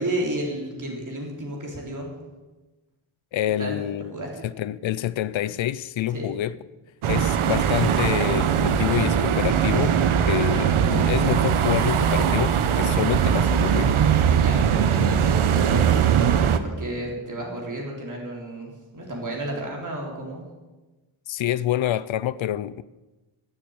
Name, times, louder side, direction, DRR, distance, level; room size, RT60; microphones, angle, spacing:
voice 1, 0.0-2.1 3.6-3.8 4.1-4.3 6.1-6.3 14.4-20.4, right 1 dB, 40° right, 3.6 m, -32 dB
voice 2, 3.3-4.1 4.4-6.5 7.1-10.0 10.3-13.9 21.3-22.8, left 12 dB, 70° left, 0.5 m, -27 dB
sound 1, 7.0-16.6, right 8 dB, 85° right, 0.9 m, -20 dB
11.5 x 7.3 x 8.9 m
wide cardioid pair, 140°, 49 cm